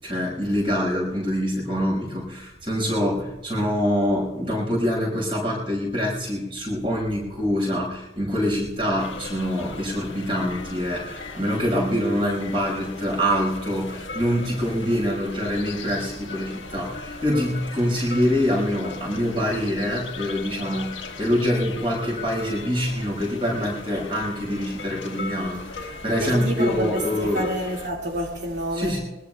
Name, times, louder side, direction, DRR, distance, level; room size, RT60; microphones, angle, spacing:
voice 1, 0.0-27.4 28.7-29.0, equal, 30° right, 5.6 m, -25 dB
sound 1, 9.0-27.9, left 3 dB, 90° left, 1.6 m, -38 dB
voice 2, 26.2-29.0, equal, 85° right, 2.2 m, -28 dB
22.5 x 20.5 x 2.3 m
head